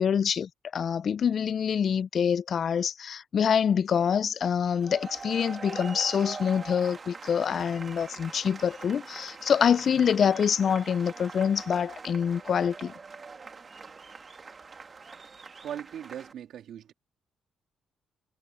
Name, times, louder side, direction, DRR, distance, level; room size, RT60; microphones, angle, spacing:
voice 1, 0.0-12.9, left 7 dB, 55° left, 0.3 m, -26 dB
sound 1, 4.7-16.3, right 4 dB, 35° right, 2.1 m, -43 dB
voice 2, 15.6-16.9, right 10 dB, 75° right, 2.2 m, -39 dB
cardioid pair, 85°, 0 cm